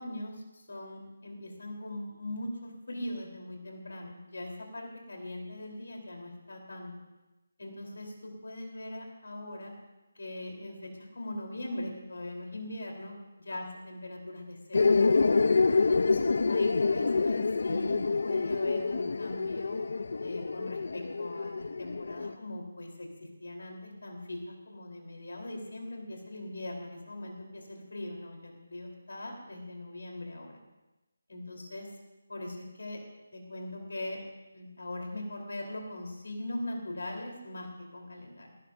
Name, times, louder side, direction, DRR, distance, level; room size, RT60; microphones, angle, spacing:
voice 1, 0.0-6.9 7.6-9.7 10.2-14.9 15.9-19.8 20.2-30.6 31.3-31.9 32.3-33.0 33.3-34.2 34.5-38.5, left 1 dB, 85° left, 1 dB, 3.7 m, -41 dB
sound 1, 14.7-22.3, left 4 dB, 60° left, 0.5 m, -27 dB
19.0 x 19.0 x 2.6 m, 1.0 s
figure-of-eight pair, 175°, 0 cm